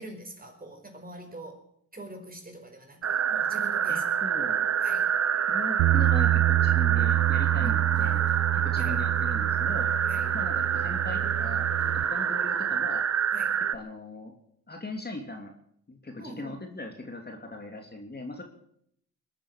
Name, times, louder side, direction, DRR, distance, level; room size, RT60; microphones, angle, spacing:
voice 1, 0.0-1.6 1.9-4.1 4.8-5.1 7.5-8.2 8.7-9.1 10.0-10.3 13.3-13.5 16.2-16.7, right 1 dB, 20° right, 4 dB, 4.9 m, -44 dB
sound 1, 3.0-13.7, right 8 dB, 40° right, 1.0 m, -27 dB
voice 2, 3.9-4.7 5.5-8.2 8.5-9.9 10.3-13.0 13.7-14.3 14.7-15.5 15.9-18.4, left 2 dB, 25° left, 3 dB, 2.9 m, -39 dB
Bass guitar, 5.8-12.0, right 17 dB, 75° right, 0.6 m, -27 dB
sound 2, 7.1-13.0, left 3 dB, 60° left, 5.2 m, -49 dB
22.0 x 8.9 x 7.4 m, 0.71 s
hypercardioid pair, 55°, 39 cm